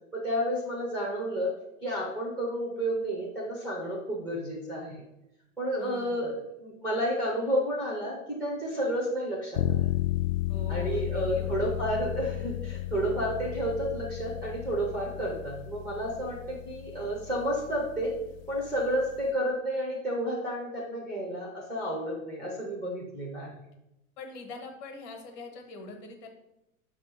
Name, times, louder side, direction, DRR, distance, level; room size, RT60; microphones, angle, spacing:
voice 1, 0.1-1.5 1.8-5.0 5.6-6.3 6.6-9.9 10.7-18.1 18.5-23.5, equal, 5° left, -2 dB, 0.3 m, -31 dB
voice 2, 5.8-6.4 10.5-11.8 24.2-26.3, left 3 dB, 35° left, 4 dB, 1.3 m, -43 dB
sound 1, 9.6-19.3, left 13 dB, 75° left, 0.5 m, -34 dB
6.6 x 3.4 x 5.8 m, 0.88 s
supercardioid pair, 150°, 41 cm